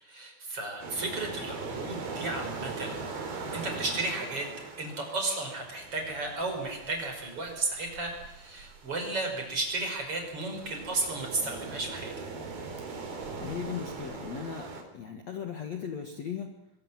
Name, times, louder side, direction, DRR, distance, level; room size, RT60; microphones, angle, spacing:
voice 1, 0.0-3.0 3.5-4.5 4.8-12.1, right 2 dB, 30° right, 3 dB, 6.0 m, -33 dB
sound 1, 0.8-14.8, right 4 dB, 50° right, 4.9 m, -41 dB
voice 2, 13.4-14.7 14.9-16.5, left 7 dB, 75° left, 4 dB, 1.5 m, -37 dB
23.5 x 23.0 x 7.6 m, 0.79 s
omnidirectional pair, 5.9 m